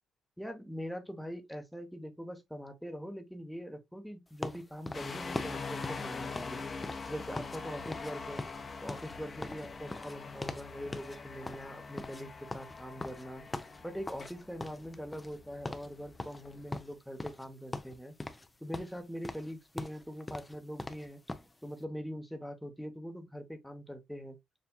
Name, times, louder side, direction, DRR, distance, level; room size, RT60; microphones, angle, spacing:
voice 1, 0.4-6.6 7.1-8.4 8.8-13.4 13.8-18.1 18.6-21.2 21.6-24.4, equal, ahead, 1.0 m, -42 dB
sound 1, 4.4-7.6 7.9-8.1 8.4-10.7 10.9-11.2 11.5-14.3 14.6-15.4 15.6-15.9 16.2-17.5 17.7-18.5 18.7-21.5, left 2 dB, 15° left, 0.6 m, -41 dB
sound 2, 4.9-16.7, left 4 dB, 35° left, 1.0 m, -43 dB
7.0 x 2.6 x 2.2 m
cardioid pair, 90°, 0 cm